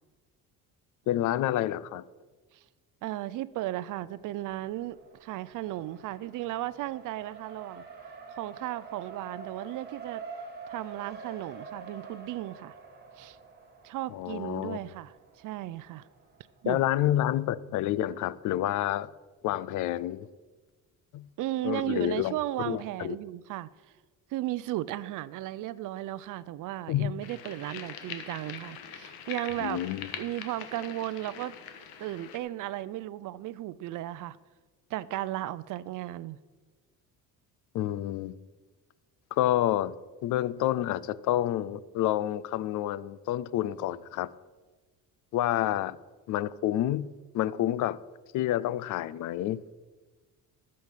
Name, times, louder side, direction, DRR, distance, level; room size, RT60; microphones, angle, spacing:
voice 1, 1.1-2.0 14.1-14.8 16.6-19.1 19.4-20.3 21.1-21.3 21.6-23.2 26.9-27.2 29.6-30.1 37.7-38.3 39.3-40.0 40.2-44.3 45.3-46.0 46.3-48.0 48.3-49.6, left 13 dB, 55° left, 0.5 m, -29 dB
voice 2, 3.0-7.8 8.3-10.2 10.7-12.8 13.2-13.4 13.8-16.1 16.6-16.8 21.4-23.7 24.3-29.8 30.2-31.6 32.0-34.4 34.9-36.4, right 15 dB, 60° right, 0.5 m, -35 dB
Race car auto racing, 4.0-16.6, right 5 dB, 30° right, 1.7 m, -47 dB
sound 1, 27.2-32.4, left 8 dB, 90° left, 1.5 m, -43 dB
14.0 x 7.7 x 5.8 m
cardioid pair, 150°, 36 cm